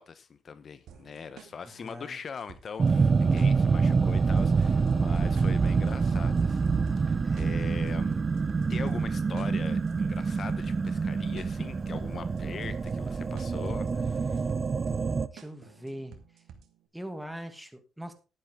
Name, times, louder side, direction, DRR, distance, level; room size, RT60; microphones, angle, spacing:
voice 1, 0.0-8.2 8.7-14.6, left 6 dB, 50° left, 1.0 m, -41 dB
sound 1, 0.9-16.9, right 8 dB, 75° right, 2.4 m, -53 dB
voice 2, 1.6-2.2 15.3-16.4 16.9-18.1, equal, 5° right, 2.3 m, -42 dB
sound 2, 2.8-15.3, right 5 dB, 35° right, 0.9 m, -26 dB
12.0 x 10.5 x 3.7 m
cardioid pair, 90°, 0 cm